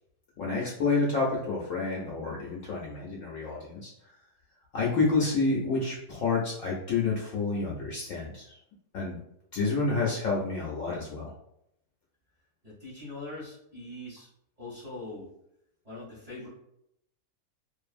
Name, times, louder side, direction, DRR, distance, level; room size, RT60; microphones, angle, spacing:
voice 1, 0.4-3.9 4.7-8.5 8.9-9.2 9.5-11.3, left 3 dB, 65° left, -4 dB, 0.9 m, -29 dB
voice 2, 12.6-14.3 14.6-15.3 15.8-16.5, left 2 dB, 30° right, -9 dB, 0.9 m, -42 dB
2.5 x 2.5 x 2.4 m, 0.78 s
omnidirectional pair, 1.7 m